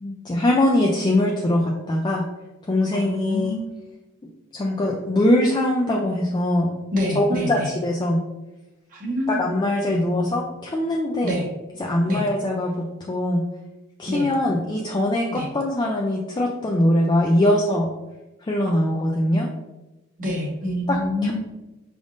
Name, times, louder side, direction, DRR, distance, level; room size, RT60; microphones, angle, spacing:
voice 1, 0.0-2.2 2.7-3.5 4.5-6.7 7.1-8.2 9.3-11.4 11.8-13.4 14.0-17.9 18.4-19.5 20.9-21.3, left 1 dB, 20° left, -1 dB, 0.3 m, -22 dB
voice 2, 2.9-3.7 6.9-7.7 8.9-9.4 9.9-10.3 11.2-11.4 12.1-12.2 14.1-14.3 15.3-15.5 18.7-19.0 20.2-21.3, left 1 dB, 40° right, -2 dB, 1.1 m, -27 dB
5.1 x 3.5 x 2.5 m, 1.0 s
head